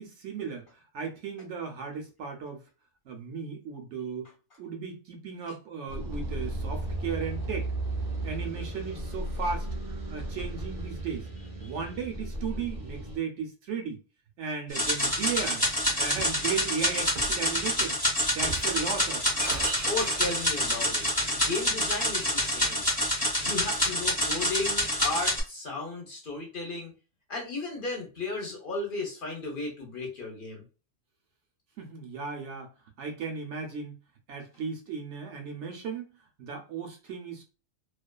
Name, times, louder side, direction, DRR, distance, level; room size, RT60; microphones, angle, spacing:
voice 1, 0.0-2.6 3.1-4.3 4.6-7.7 8.2-9.7 10.1-11.3 11.6-14.0 14.4-15.6 16.0-18.0 18.3-19.3 31.8-32.7 33.0-33.9 34.3-36.1 36.4-37.4, right 6 dB, 70° right, 3 dB, 0.9 m, -35 dB
sound 1, 5.9-13.2, right 1 dB, 30° right, 0.8 m, -35 dB
sound 2, 14.7-25.4, equal, 10° left, 0.8 m, -27 dB
Shatter, 15.6-16.4 17.2-17.5 18.3-21.0, right 4 dB, 85° right, 0.3 m, -40 dB
voice 2, 19.9-26.9 27.3-30.6, left 3 dB, 50° left, 0 dB, 0.8 m, -35 dB
2.3 x 2.3 x 2.2 m, 0.33 s
omnidirectional pair, 1.3 m